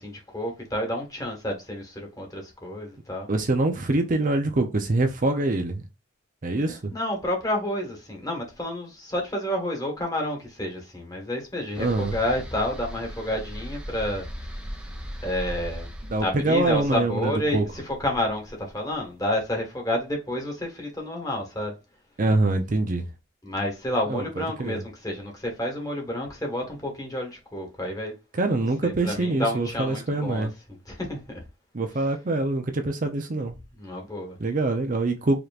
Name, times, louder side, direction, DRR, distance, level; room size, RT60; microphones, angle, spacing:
voice 1, 0.0-3.3 6.9-14.3 15.2-15.9 16.2-21.8 23.4-28.1 28.6-31.4 32.0-32.1 33.7-34.4, left 1 dB, 20° left, 1.4 m, -30 dB
voice 2, 3.3-5.8 6.4-6.9 11.8-12.1 16.1-17.6 22.2-23.1 24.1-24.2 24.6-24.8 28.4-30.5 31.7-33.6 34.4-35.4, right 2 dB, 40° right, 0.6 m, -24 dB
sound 1, 11.7-18.9, equal, 5° right, 0.7 m, -39 dB
5.0 x 3.0 x 2.4 m
head